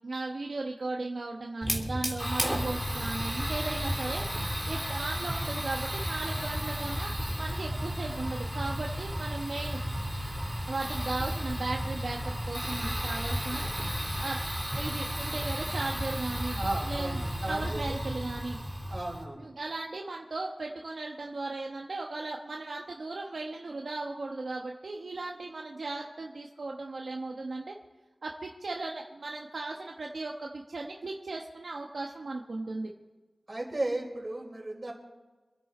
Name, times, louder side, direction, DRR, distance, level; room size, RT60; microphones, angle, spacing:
voice 1, 0.0-4.3 4.7-9.8 10.7-13.7 14.2-14.4 14.7-17.2 17.5-18.6 19.4-27.8 28.2-32.9, right 3 dB, 65° right, 0 dB, 1.2 m, -36 dB
Fire, 1.6-19.2, equal, 5° left, 2.9 m, -33 dB
voice 2, 16.6-18.0 18.9-19.5 33.5-34.9, right 2 dB, 35° right, -1 dB, 4.7 m, -35 dB
27.5 x 10.0 x 4.4 m, 1.2 s
wide cardioid pair, 85°, 0 cm